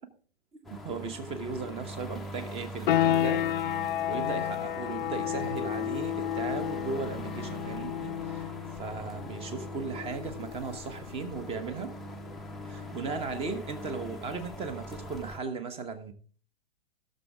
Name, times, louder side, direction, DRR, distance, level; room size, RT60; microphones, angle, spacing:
sound 1, 0.6-15.4, equal, ahead, 0.6 m, -42 dB
voice 1, 0.7-3.5 3.8-8.5 8.8-11.9 12.6-16.1, right 4 dB, 20° right, 1.1 m, -37 dB
sound 2, 2.9-13.4, left 12 dB, 50° left, 0.5 m, -32 dB
16.0 x 6.7 x 3.5 m
figure-of-eight pair, 115°, 32 cm